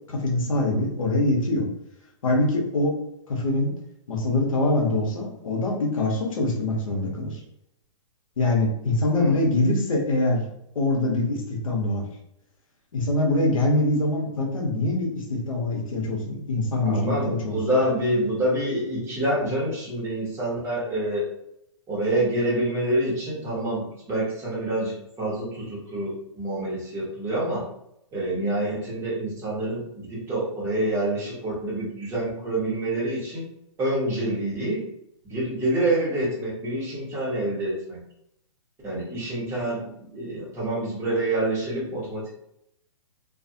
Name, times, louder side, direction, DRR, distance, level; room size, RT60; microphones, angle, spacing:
voice 1, 0.1-1.7 2.2-3.0 3.3-3.7 4.1-7.4 8.4-10.5 10.7-12.0 12.9-17.6, left 2 dB, 85° left, -1 dB, 0.9 m, -24 dB
voice 2, 9.1-9.4 16.7-21.3 21.9-27.7 28.1-33.5 33.8-34.8 35.2-38.0 38.8-42.3, right 1 dB, 15° right, -7 dB, 1.1 m, -27 dB
2.4 x 2.4 x 2.7 m, 0.77 s
hypercardioid pair, 140°, 17 cm